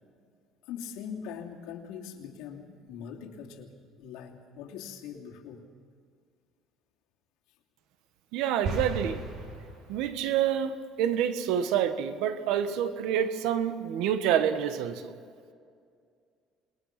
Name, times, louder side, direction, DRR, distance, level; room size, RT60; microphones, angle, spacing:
voice 1, 0.7-5.7, left 7 dB, 85° left, 2.8 m, -42 dB
voice 2, 8.3-9.2 9.9-15.1, right 9 dB, 85° right, 1.5 m, -27 dB
sound 1, 8.6-10.3, right 3 dB, 65° right, 5.5 m, -36 dB
27.0 x 21.0 x 6.0 m
cardioid pair, 135°, 0 cm